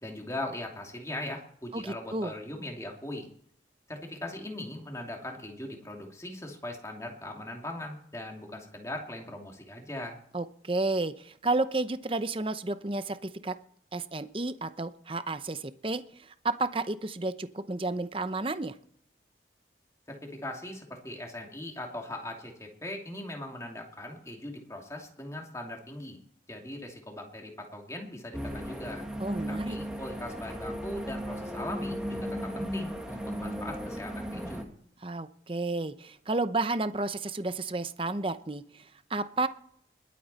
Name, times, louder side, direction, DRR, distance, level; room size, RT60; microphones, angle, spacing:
voice 1, 0.0-3.3 3.9-10.2 20.1-26.2 26.5-29.1 29.5-34.7, left 1 dB, 15° left, 1 dB, 2.7 m, -40 dB
voice 2, 1.7-2.3 10.3-13.6 13.9-18.8 29.2-29.8 35.0-39.5, right 2 dB, 30° right, 11 dB, 0.8 m, -32 dB
sound 1, 28.3-34.6, equal, 5° right, 1.8 m, -36 dB
21.5 x 8.6 x 4.2 m, 0.62 s
head